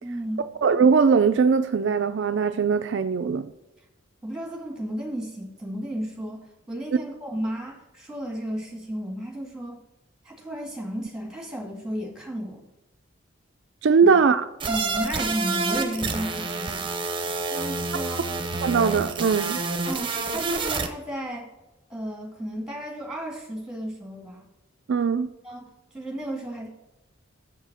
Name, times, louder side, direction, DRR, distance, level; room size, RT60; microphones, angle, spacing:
voice 1, 0.0-0.5 4.2-9.8 10.3-12.6 14.0-14.2 14.7-16.9 17.5-18.3 19.9-21.5 21.9-24.4 25.4-25.7 25.9-26.7, equal, 5° right, 1.9 m, -33 dB
voice 2, 0.6-3.5 13.8-14.5 18.6-19.6 24.9-25.3, right 5 dB, 60° right, 0.3 m, -20 dB
sound 1, 14.6-20.9, right 3 dB, 25° right, 0.8 m, -28 dB
7.4 x 5.6 x 6.0 m
head